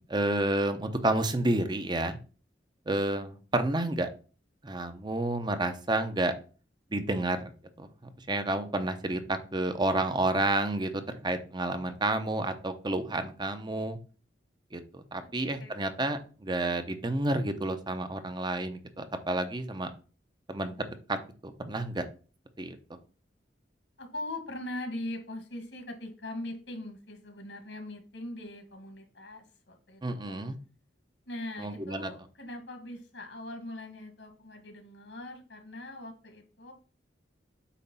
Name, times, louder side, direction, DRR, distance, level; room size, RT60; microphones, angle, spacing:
voice 1, 0.1-2.2 2.9-4.1 4.6-6.3 6.9-7.5 7.8-7.9 8.3-14.0 14.7-19.9 20.5-20.7 21.1-21.2 21.4-22.0 22.6-22.8 30.0-30.6 31.6-32.1, right 2 dB, 25° right, 8 dB, 0.8 m, -30 dB
voice 2, 24.0-30.5 31.3-36.7, left 1 dB, 80° left, 4 dB, 2.1 m, -41 dB
8.4 x 3.2 x 5.5 m, 0.37 s
head